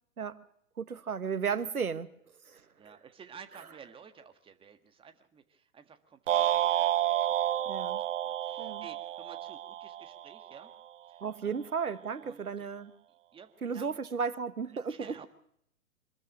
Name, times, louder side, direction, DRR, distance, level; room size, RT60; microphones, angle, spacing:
voice 1, 0.8-2.1 2.5-2.7 7.6-8.0 8.6-8.8 11.2-12.9 13.6-15.3, right 6 dB, 85° right, 13 dB, 1.5 m, -34 dB
voice 2, 2.8-7.6 7.9-10.7 11.1-11.5 12.2-12.7 13.3-13.9 14.9-15.3, right 6 dB, 10° right, 7 dB, 1.7 m, -53 dB
sound 1, 6.3-10.6, right 12 dB, 60° right, 0.7 m, -30 dB
25.5 x 13.0 x 9.1 m, 0.71 s
figure-of-eight pair, 120°, 43 cm